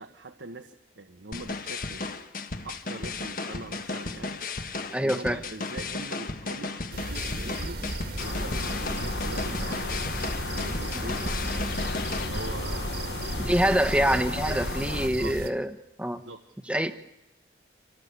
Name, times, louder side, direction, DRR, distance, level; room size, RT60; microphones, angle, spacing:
voice 1, 0.0-2.0 2.6-4.4 5.0-7.8 8.2-10.0 10.5-11.8 12.2-14.6 15.2-15.4 16.1-16.4, right 2 dB, 90° right, 5 dB, 1.4 m, -43 dB
sound 1, 1.3-12.3, left 3 dB, 50° left, 1.4 m, -35 dB
voice 2, 4.9-5.4 13.4-15.7 16.0-16.2 16.7-16.9, equal, 5° right, 10 dB, 1.0 m, -25 dB
sound 2, 6.9-15.5, right 1 dB, 60° right, 1.8 m, -35 dB
sound 3, 8.2-15.1, left 2 dB, 70° left, 1.2 m, -34 dB
27.0 x 19.0 x 8.3 m, 0.94 s
head